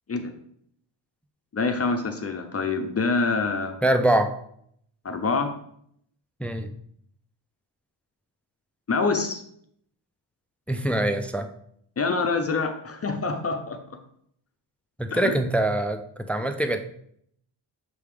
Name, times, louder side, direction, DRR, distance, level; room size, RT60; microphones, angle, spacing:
voice 1, 1.5-3.8 5.0-5.5 8.9-9.4 12.0-14.0 15.1-15.3, left 4 dB, 35° left, 5 dB, 0.6 m, -26 dB
voice 2, 3.8-4.3 6.4-6.7 10.7-11.5 15.0-16.8, right 1 dB, 5° left, 8 dB, 0.3 m, -24 dB
6.8 x 3.5 x 4.8 m, 0.68 s
wide cardioid pair, 140°, 44 cm